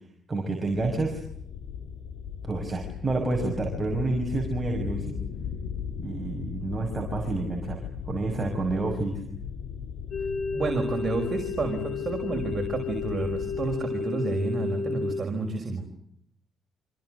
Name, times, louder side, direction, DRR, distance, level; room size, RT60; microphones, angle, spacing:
voice 1, 0.3-1.2 2.4-5.1 6.0-7.8 8.1-9.2, right 2 dB, 20° right, 0 dB, 6.2 m, -29 dB
sound 1, 0.7-13.8, left 7 dB, 85° left, 3.1 m, -37 dB
sound 2, 10.1-15.2, left 5 dB, 55° left, 2.0 m, -32 dB
voice 2, 10.5-15.8, right 3 dB, 35° right, 2 dB, 5.6 m, -30 dB
27.0 x 26.5 x 7.9 m, 0.71 s
cardioid pair, 90°, 0 cm